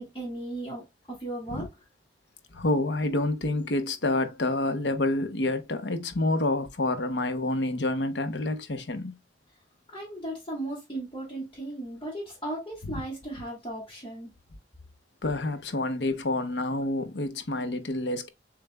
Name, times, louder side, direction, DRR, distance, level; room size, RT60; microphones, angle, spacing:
voice 1, 0.0-1.7 9.9-14.3, right 1 dB, 25° left, 2.0 m, -36 dB
voice 2, 2.5-9.2 15.2-18.3, left 2 dB, 80° left, 0.8 m, -28 dB
6.9 x 3.3 x 2.3 m
head